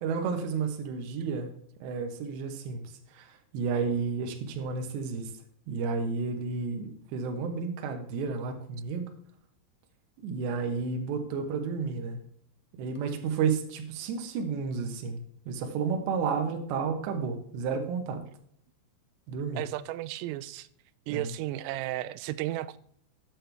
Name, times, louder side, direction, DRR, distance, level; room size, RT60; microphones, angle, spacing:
voice 1, 0.0-1.5 1.8-2.8 3.1-5.3 5.7-9.1 10.2-12.2 12.8-18.2 19.3-19.6 21.1-21.3, right 5 dB, 70° right, 3.1 m, -31 dB
voice 2, 19.6-20.7 21.1-22.8, right 15 dB, 90° right, 3.2 m, -34 dB
10.0 x 7.5 x 3.4 m
omnidirectional pair, 5.7 m